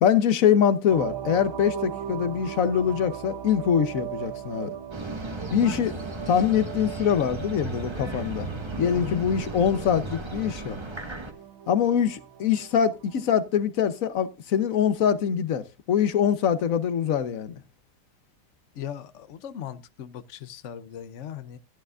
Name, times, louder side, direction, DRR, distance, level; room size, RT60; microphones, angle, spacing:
voice 1, 0.0-4.7 5.5-5.9 6.3-8.5 8.8-10.8 11.7-17.5, left 8 dB, 55° left, 1.0 m, -24 dB
sound 1, 0.9-13.4, right 10 dB, 80° right, 1.8 m, -39 dB
sound 2, 4.9-11.3, right 2 dB, 15° right, 1.1 m, -35 dB
voice 2, 8.9-9.2 18.7-21.6, left 10 dB, 75° left, 0.6 m, -38 dB
13.5 x 11.5 x 2.5 m
omnidirectional pair, 2.2 m